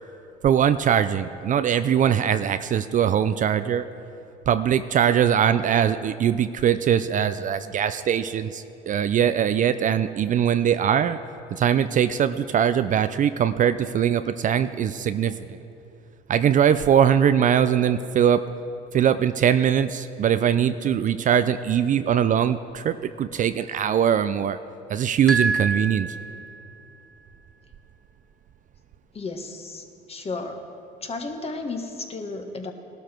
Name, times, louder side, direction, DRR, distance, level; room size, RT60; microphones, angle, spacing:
voice 1, 0.4-3.8 4.5-11.2 11.5-15.6 16.3-18.4 18.9-24.6 24.9-26.1, right 9 dB, 40° right, 11 dB, 0.5 m, -21 dB
sound 1, 25.3-26.8, right 4 dB, 5° left, 1.1 m, -27 dB
voice 2, 29.1-30.6 31.0-32.7, left 3 dB, 30° left, 4 dB, 1.6 m, -33 dB
18.0 x 12.0 x 4.5 m, 2.8 s
supercardioid pair, 90°, 20 cm